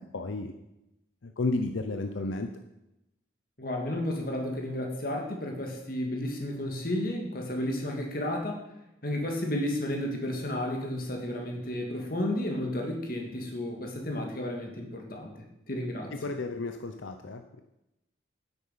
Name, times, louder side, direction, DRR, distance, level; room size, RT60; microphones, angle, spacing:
voice 1, 0.1-0.5 1.2-2.5 16.2-17.6, left 2 dB, 80° left, 7 dB, 0.7 m, -32 dB
voice 2, 3.6-8.6 9.0-16.2, left 1 dB, 50° left, 2 dB, 2.0 m, -32 dB
9.6 x 8.2 x 5.7 m, 0.90 s
head